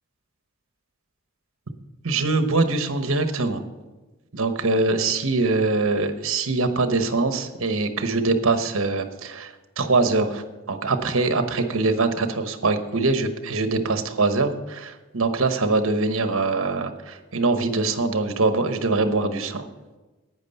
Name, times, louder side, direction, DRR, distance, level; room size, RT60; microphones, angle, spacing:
voice 1, 2.0-3.6 4.3-19.6, right 3 dB, 70° right, 8 dB, 1.1 m, -23 dB
11.0 x 9.2 x 5.5 m, 1.1 s
head